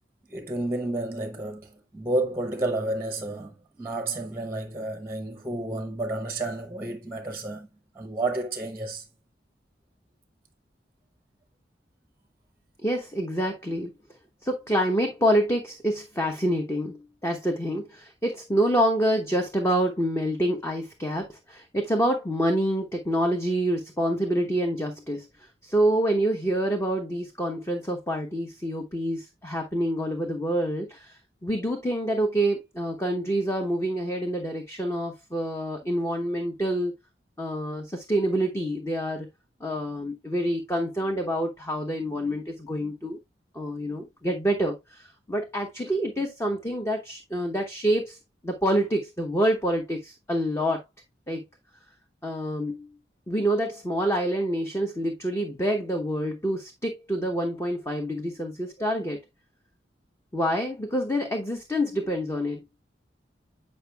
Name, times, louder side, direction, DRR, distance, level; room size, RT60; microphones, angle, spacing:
voice 1, 0.3-7.7 7.9-9.1, right 2 dB, 15° right, 0.8 m, -31 dB
voice 2, 12.8-13.9 14.4-25.3 25.6-31.1 31.4-36.9 37.4-39.3 39.6-43.2 43.5-48.2 48.4-50.8 51.3-51.4 52.2-52.9 53.3-59.2 60.3-62.6, equal, 15° left, 0.8 m, -27 dB
8.6 x 5.2 x 2.3 m
head